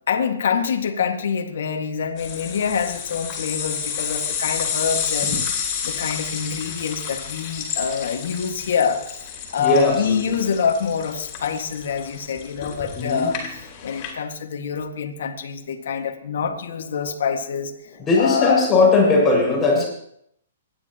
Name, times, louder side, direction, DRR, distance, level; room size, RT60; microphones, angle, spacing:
voice 1, 0.1-5.4 5.8-13.4 13.8-17.7 18.2-18.6 19.7-19.8, left 6 dB, 70° left, 4 dB, 1.9 m, -25 dB
sound 1, 2.2-14.1, left 7 dB, 35° left, 4.6 m, -30 dB
voice 2, 9.6-10.3 13.0-13.3 18.1-19.9, left 3 dB, 15° left, -3 dB, 6.2 m, -18 dB
26.0 x 11.0 x 3.0 m, 0.69 s
hypercardioid pair, 140°, 0 cm